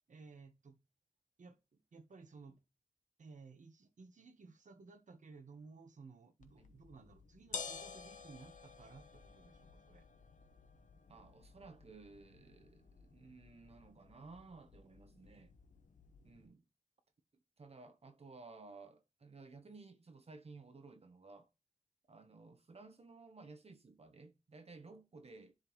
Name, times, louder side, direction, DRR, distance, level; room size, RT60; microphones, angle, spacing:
voice 1, 0.1-0.8 1.4-2.6 3.2-10.1, right 4 dB, 75° right, 1.1 m, -57 dB
sound 1, 6.4-16.5, left 5 dB, 80° left, 0.9 m, -52 dB
voice 2, 11.1-15.5 16.2-16.6 17.6-21.5 22.1-25.5, right 3 dB, 55° right, 1.1 m, -56 dB
10.5 x 3.6 x 3.1 m
wide cardioid pair, 95°, 13 cm